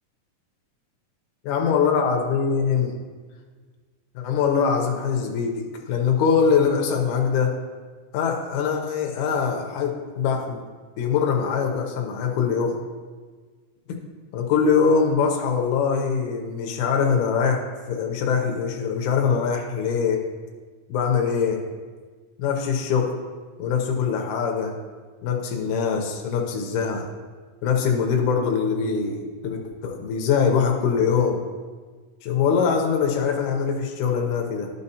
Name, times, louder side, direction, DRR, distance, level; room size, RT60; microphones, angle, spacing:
voice 1, 1.5-2.9 4.2-7.5 8.1-10.6 11.0-12.7 13.9-14.0 14.3-17.6 17.9-20.2 20.9-21.6 22.4-23.1 23.6-24.7 25.2-27.1 27.6-31.4 32.2-34.7, left 6 dB, 80° left, 2 dB, 2.1 m, -23 dB
12.5 x 5.4 x 2.8 m, 1.5 s
omnidirectional pair, 3.5 m